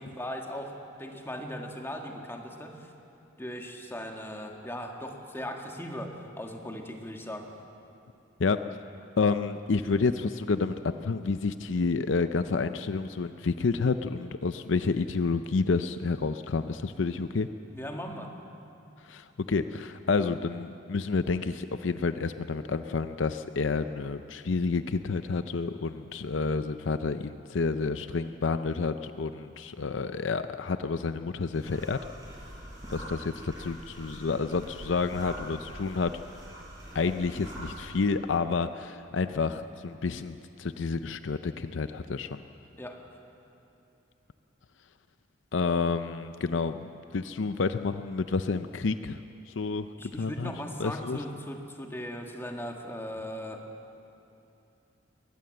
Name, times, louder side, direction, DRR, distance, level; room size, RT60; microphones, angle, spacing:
voice 1, 0.0-2.9 3.4-7.5 17.7-18.4 42.7-43.0 50.0-53.7, equal, 15° left, 2 dB, 1.9 m, -38 dB
voice 2, 9.2-17.5 19.0-32.0 32.9-36.2 36.9-42.4 45.5-49.2 49.5-49.9 50.1-50.5 50.8-51.2, left 4 dB, 75° left, 10 dB, 0.6 m, -29 dB
sound 1, 31.5-37.9, right 1 dB, 20° right, 6.6 m, -44 dB
21.5 x 19.0 x 7.8 m, 2.8 s
head